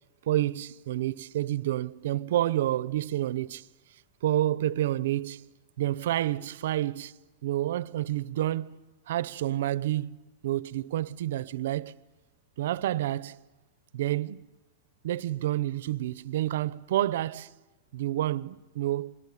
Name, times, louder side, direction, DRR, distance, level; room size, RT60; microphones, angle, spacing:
voice 1, 0.3-3.7 4.2-5.4 5.8-8.8 9.1-12.0 12.6-13.4 13.9-14.5 15.0-17.5 17.9-19.2, right 13 dB, 70° right, 0.8 m, -29 dB
28.0 x 20.5 x 8.6 m
supercardioid pair, 140°, 0 cm